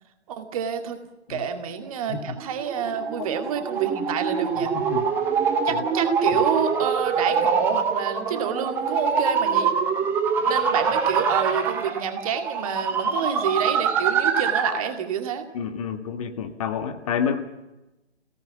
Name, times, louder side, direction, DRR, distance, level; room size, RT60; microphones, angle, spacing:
voice 1, 0.3-1.0 1.3-4.7 5.6-9.7 10.4-15.4, right 7 dB, 30° right, 7 dB, 2.2 m, -28 dB
sound 1, 2.2-14.9, right 6 dB, 5° right, 0.7 m, -24 dB
voice 2, 4.7-5.1 5.7-5.8 15.5-17.4, left 7 dB, 30° left, 7 dB, 1.7 m, -29 dB
29.5 x 17.5 x 7.2 m, 1.0 s
figure-of-eight pair, 135°, 34 cm